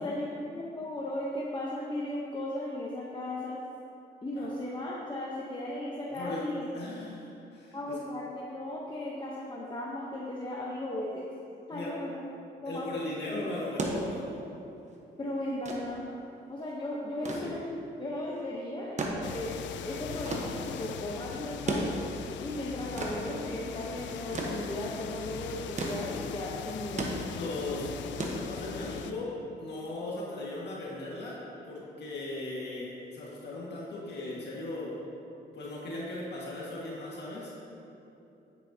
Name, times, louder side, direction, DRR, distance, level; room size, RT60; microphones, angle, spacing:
voice 1, 0.0-3.6 4.2-6.7 7.7-11.2 11.7-12.2 12.6-12.9 15.2-16.1 16.5-19.5 19.8-21.9 22.4-27.2, left 1 dB, 25° left, -4 dB, 1.0 m, -36 dB
voice 2, 6.1-6.4 6.7-8.0 11.7-11.9 12.7-14.4 17.2-17.5 27.3-27.9 28.2-31.4 31.7-35.0 35.5-37.5, left 2 dB, 70° left, -5 dB, 1.8 m, -37 dB
sound 1, 13.8-29.1 30.3-30.4, right 2 dB, 40° right, 1.2 m, -37 dB
sound 2, 19.2-29.1, left 8 dB, 85° left, 0.4 m, -41 dB
9.4 x 8.7 x 2.9 m, 2.9 s
cardioid pair, 100°, 18 cm